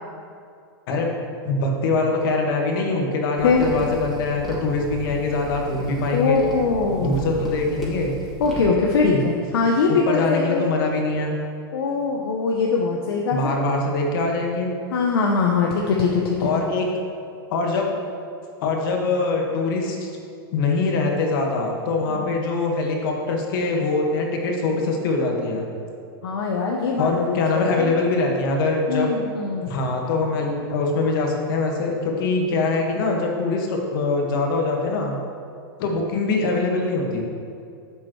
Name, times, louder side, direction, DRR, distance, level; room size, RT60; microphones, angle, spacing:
voice 1, 1.4-6.4 7.0-8.1 9.9-11.3 13.3-14.7 16.4-16.9 17.5-17.9 18.6-20.1 20.5-25.7 27.0-29.2 29.7-35.2 35.8-37.2, left 3 dB, 65° left, 1 dB, 1.7 m, -23 dB
voice 2, 3.4-3.7 6.1-7.3 8.4-10.7 11.7-13.7 14.9-16.5 22.1-22.3 26.2-27.9 28.9-29.8, left 4 dB, 80° left, 0 dB, 0.9 m, -22 dB
sound 1, 3.4-8.7, right 1 dB, ahead, 2.3 m, -35 dB
11.0 x 7.4 x 3.2 m, 2.4 s
hypercardioid pair, 125°, 12 cm